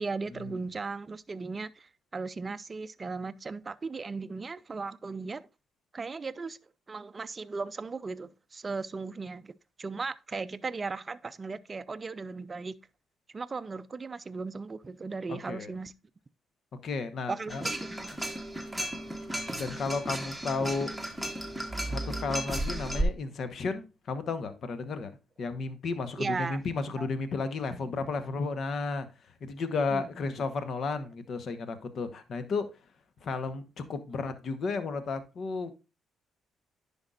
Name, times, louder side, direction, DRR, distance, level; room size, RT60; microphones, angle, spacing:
voice 1, 0.0-5.5 5.9-6.6 6.9-12.8 13.3-15.9 17.3-18.1 26.2-26.6 27.0-27.1 27.7-27.9 29.9-30.1, right 4 dB, 30° right, 0.4 m, -37 dB
voice 2, 15.3-15.7 16.8-17.6 19.6-20.9 21.8-25.1 25.4-29.1 29.4-32.7 33.2-35.7, left 4 dB, 60° left, 1.0 m, -33 dB
sound 1, 17.5-23.0, right 1 dB, ahead, 1.2 m, -34 dB
10.5 x 5.3 x 2.4 m
cardioid pair, 90°, 0 cm